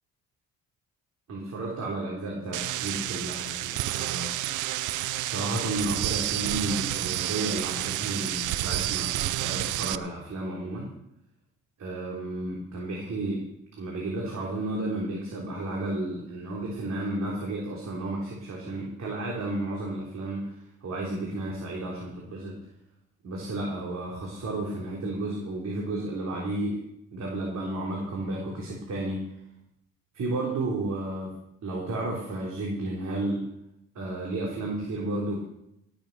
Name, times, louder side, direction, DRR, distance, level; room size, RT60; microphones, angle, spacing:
voice 1, 1.3-4.7 5.2-10.9 11.8-13.4 13.8-22.6 23.2-26.8 27.1-29.2 30.1-31.3 31.6-33.5 33.9-35.4, right 2 dB, 60° right, -3 dB, 3.8 m, -32 dB
sound 1, 2.5-10.0, right 15 dB, 85° right, 0.6 m, -30 dB
17.5 x 7.5 x 6.8 m, 0.81 s
cardioid pair, 90°, 30 cm